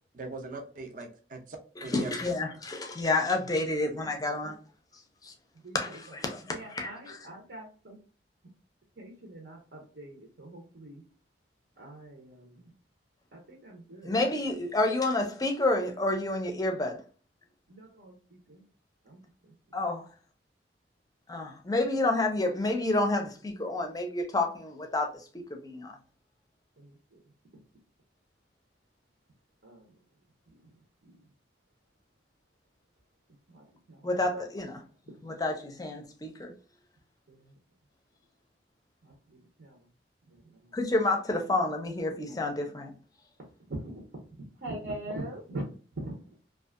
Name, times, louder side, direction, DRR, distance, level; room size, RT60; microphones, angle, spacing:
voice 1, 0.1-2.2, right 3 dB, 50° right, 0.5 m, -41 dB
voice 2, 1.9-4.6 5.2-5.3 5.7-7.2 14.0-17.0 19.7-20.0 21.3-25.1 25.6-26.0 34.0-34.8 35.2-36.5 40.7-43.0, left 2 dB, 20° left, 0.5 m, -29 dB
voice 3, 5.6-6.0 6.4-8.0 9.0-11.0 11.8-12.7 13.3-14.2 17.7-18.6 19.0-19.5 26.8-27.2 29.6-29.9 31.0-31.1 33.5-34.4 37.3-37.5 39.0-39.8 40.3-40.6 43.7-44.0 44.4-45.6 46.0-46.2, right 1 dB, 80° right, 0.8 m, -43 dB
2.6 x 2.3 x 2.4 m
head